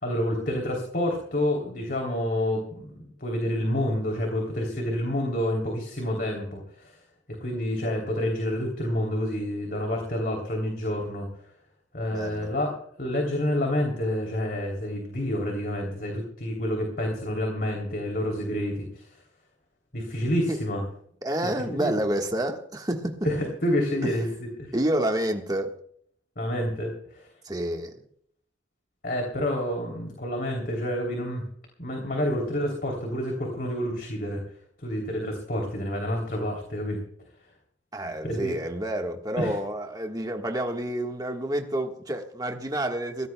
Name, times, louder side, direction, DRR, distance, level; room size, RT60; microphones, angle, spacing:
voice 1, 0.0-2.9 3.2-7.0 7.4-11.3 11.9-19.1 19.9-20.8 21.6-21.9 23.2-24.7 26.4-27.3 29.0-31.4 31.8-34.4 34.8-37.0 38.2-38.5 39.3-39.6, left 1 dB, 50° left, 3.2 m, -28 dB
voice 2, 12.1-12.5 20.5-20.6 21.2-23.2 24.0-24.1 24.7-25.7 27.4-27.9 37.9-43.3, right 1 dB, 20° right, 1.4 m, -29 dB
23.0 x 16.5 x 2.3 m
head